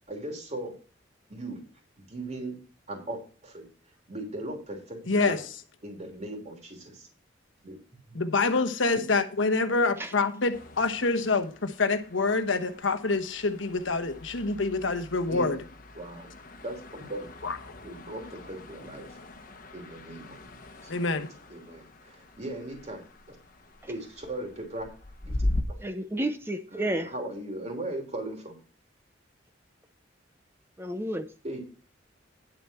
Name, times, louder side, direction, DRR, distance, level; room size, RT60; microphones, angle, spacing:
voice 1, 0.1-0.8 1.3-1.6 2.0-2.6 2.9-3.6 4.1-5.4 5.8-7.1 7.6-7.8 8.1-8.2 8.9-9.0 15.3-15.5 15.9-16.3 16.6-17.3 17.8-19.1 19.7-20.4 20.8-20.9 21.5-23.3 23.9-24.9 25.2-25.8 26.7-28.6 31.4-31.6, right 1 dB, 35° right, 3.2 m, -38 dB
voice 2, 5.1-5.4 8.1-15.6 17.4-17.6 20.9-21.3, left 3 dB, 85° left, 1.1 m, -26 dB
sound 1, 10.5-25.6, left 1 dB, 50° left, 1.2 m, -40 dB
voice 3, 25.8-27.1 30.8-31.3, right 1 dB, 15° right, 0.7 m, -31 dB
10.5 x 7.0 x 4.4 m
head